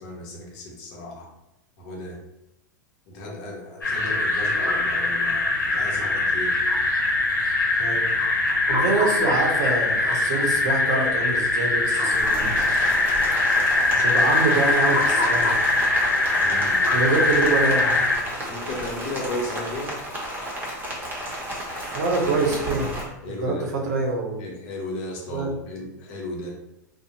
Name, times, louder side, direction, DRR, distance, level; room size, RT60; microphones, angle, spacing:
voice 1, 0.0-1.3 1.8-2.2 3.1-6.6 16.4-16.8 18.5-20.0 23.2-23.9 24.4-26.5, left 1 dB, 50° left, -1 dB, 0.8 m, -35 dB
sound 1, 3.8-18.2, left 2 dB, 90° left, 0.7 m, -22 dB
voice 2, 8.7-12.9 13.9-15.6 16.9-18.0 21.9-22.9 23.4-24.5 25.3-25.5, right 3 dB, 65° right, 1 dB, 0.7 m, -25 dB
Rain, 12.1-23.0, equal, 20° right, 0.8 m, -32 dB
2.5 x 2.0 x 2.8 m, 0.87 s
hypercardioid pair, 95°, 10 cm